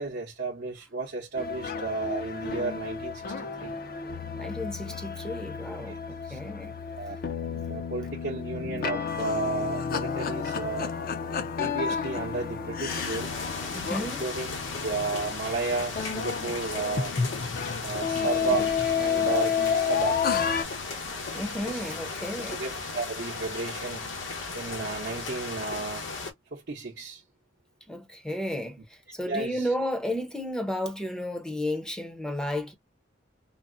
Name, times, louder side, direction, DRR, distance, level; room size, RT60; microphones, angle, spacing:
voice 1, 0.0-3.7 5.9-6.0 6.3-6.4 6.9-7.2 7.4-10.9 11.6-13.4 14.0-14.5 14.8-17.2 17.8-20.2 21.7-21.9 22.6-24.1 24.5-26.1 26.5-27.2 29.3-29.7, right 3 dB, 60° right, 0.8 m, -33 dB
sound 1, 1.4-20.6, left 6 dB, 50° left, 0.5 m, -31 dB
voice 2, 3.4-6.8 13.7-14.2 21.3-22.6 27.9-32.7, left 1 dB, 5° left, 0.6 m, -33 dB
sound 2, 12.9-26.3, left 4 dB, 80° left, 0.9 m, -36 dB
3.9 x 2.0 x 2.4 m
head